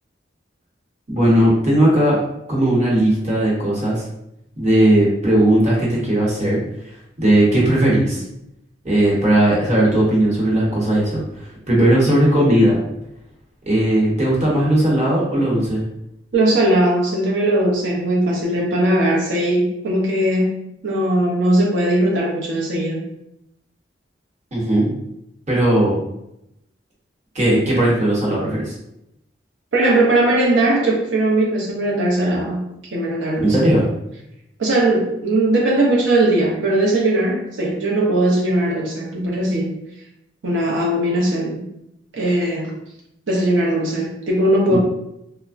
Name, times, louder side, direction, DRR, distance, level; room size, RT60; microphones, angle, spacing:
voice 1, 1.1-2.2 2.5-4.0 4.6-6.6 7.2-8.2 8.8-12.8 13.7-15.8 24.5-24.9 25.5-26.0 27.3-28.7 33.4-33.9 44.7-44.8, right 1 dB, 40° right, -5 dB, 0.9 m, -17 dB
voice 2, 16.3-20.6 20.8-23.1 29.7-33.8 34.6-39.8 40.4-41.7 42.1-42.8 43.3-44.8, right 1 dB, 85° right, -3 dB, 0.6 m, -19 dB
3.2 x 2.0 x 2.4 m, 0.82 s
head